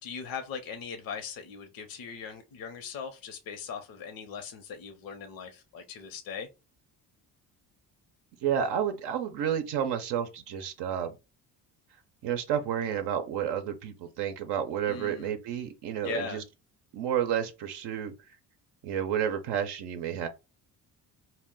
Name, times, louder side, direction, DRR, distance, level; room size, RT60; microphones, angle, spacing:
voice 1, 0.0-6.5 14.9-15.3 16.0-16.4, left 6 dB, 60° left, 0.6 m, -39 dB
voice 2, 8.4-11.2 12.2-16.4 16.9-18.1 18.8-20.3, right 9 dB, 85° right, 0.6 m, -30 dB
2.2 x 2.0 x 3.6 m
cardioid pair, 80°, 39 cm